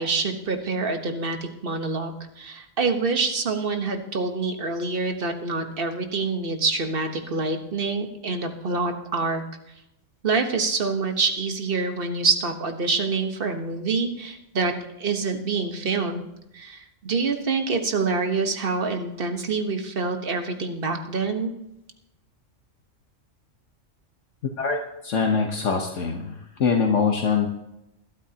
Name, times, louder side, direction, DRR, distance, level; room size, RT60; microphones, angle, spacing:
voice 1, 0.0-9.4 10.2-14.7 15.0-16.2 16.5-21.5, right 4 dB, 45° right, 5 dB, 1.4 m, -26 dB
voice 2, 24.6-26.3 26.6-27.5, left 5 dB, 65° left, 1 dB, 1.5 m, -23 dB
21.5 x 12.5 x 2.9 m, 0.88 s
omnidirectional pair, 1.3 m